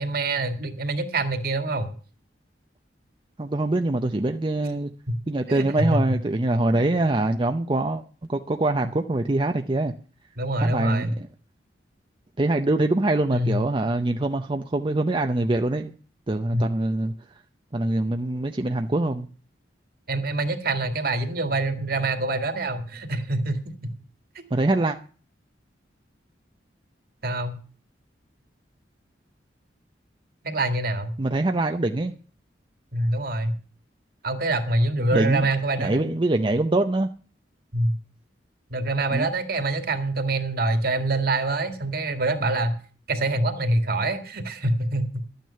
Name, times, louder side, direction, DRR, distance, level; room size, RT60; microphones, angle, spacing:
voice 1, 0.0-1.9 5.1-5.2 5.5-6.0 6.7-7.0 10.4-11.1 13.3-13.6 16.5-16.6 20.1-23.6 27.2-27.6 30.4-31.1 32.9-33.5 34.2-36.1 37.7-38.0 38.7-42.8 43.1-45.2, right 2 dB, 55° right, 7 dB, 2.0 m, -25 dB
voice 2, 3.4-4.9 5.3-8.0 8.3-9.9 10.6-11.3 12.4-16.0 16.3-17.1 17.7-19.3 24.5-25.0 31.2-32.1 35.1-35.5 35.8-37.1 39.1-39.3, right 2 dB, 25° right, 5 dB, 0.6 m, -24 dB
12.5 x 9.3 x 5.7 m, 0.41 s
head